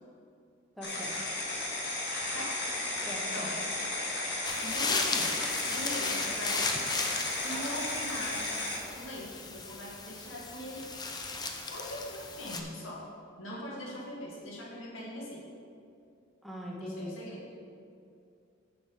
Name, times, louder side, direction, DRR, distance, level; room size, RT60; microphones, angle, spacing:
sound 1, 0.8-8.8, left 2 dB, 60° left, 1.7 m, -34 dB
voice 1, 0.8-1.2 3.0-3.5 13.5-13.6 16.4-17.1, equal, ahead, -3 dB, 1.1 m, -41 dB
voice 2, 2.3-2.6 3.3-3.6 4.6-6.7 7.4-8.5 8.9-10.8 11.7-13.1 13.4-15.4 16.8-17.5, left 1 dB, 90° left, -3 dB, 2.0 m, -41 dB
sound 2, 4.4-12.6, left 3 dB, 20° left, 0.6 m, -36 dB
9.4 x 6.7 x 4.3 m, 2.5 s
head